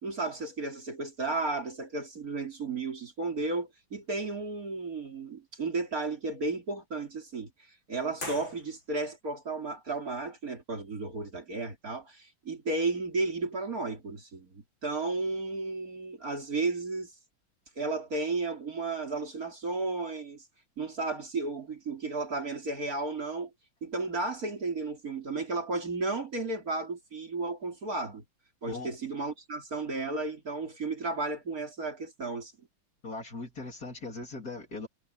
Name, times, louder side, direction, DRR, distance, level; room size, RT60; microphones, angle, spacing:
voice 1, 0.0-7.5 7.9-17.1 17.8-20.4 20.8-23.5 23.8-28.2 28.6-32.5, right 3 dB, 45° right, 3.6 m, -33 dB
sound 1, 8.2-9.2, left 2 dB, 65° left, 8.5 m, -42 dB
voice 2, 33.0-34.9, left 3 dB, 45° left, 3.9 m, -39 dB
omnidirectional pair, 2.3 m